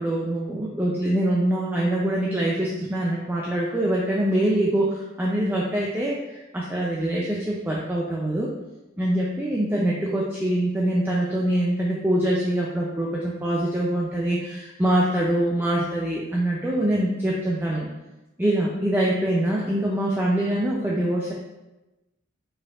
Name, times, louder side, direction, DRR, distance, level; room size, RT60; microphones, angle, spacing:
voice 1, 0.0-8.5 9.0-17.9 18.4-21.3, right 1 dB, 10° right, -4 dB, 0.4 m, -24 dB
5.0 x 4.3 x 2.4 m, 1.0 s
head